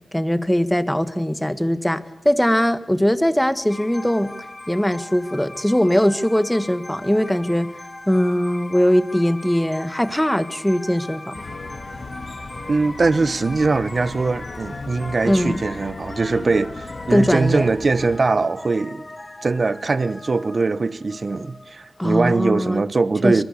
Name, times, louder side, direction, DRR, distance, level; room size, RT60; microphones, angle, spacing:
voice 1, 0.1-4.3 4.7-7.8 8.1-11.4 15.2-15.6 17.1-17.7 22.0-22.8 23.2-23.4, equal, 5° left, 1.7 m, -20 dB
sound 1, 3.7-22.0, left 1 dB, 25° left, 1.7 m, -39 dB
sound 2, 11.3-18.2, left 3 dB, 65° left, 3.7 m, -37 dB
voice 2, 12.7-19.0 19.4-23.4, right 3 dB, 55° right, 1.1 m, -21 dB
25.0 x 21.5 x 8.4 m
wide cardioid pair, 80°, 0 cm